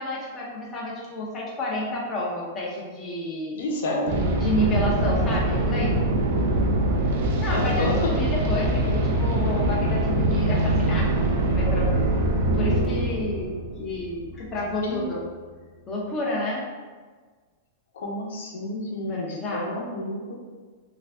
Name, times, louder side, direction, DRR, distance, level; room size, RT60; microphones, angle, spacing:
voice 1, 0.0-3.6 4.4-5.9 7.4-11.9 12.5-13.5 13.8-15.2 15.9-16.6 19.0-19.7, left 2 dB, 15° left, -4 dB, 0.5 m, -30 dB
voice 2, 3.6-4.2 7.5-8.1 14.8-15.0 17.9-20.3, left 2 dB, 65° left, 0 dB, 0.7 m, -30 dB
sound 1, 4.1-14.8, right 1 dB, 55° right, 0.6 m, -23 dB
3.3 x 2.4 x 3.3 m, 1.4 s
supercardioid pair, 180°, 0 cm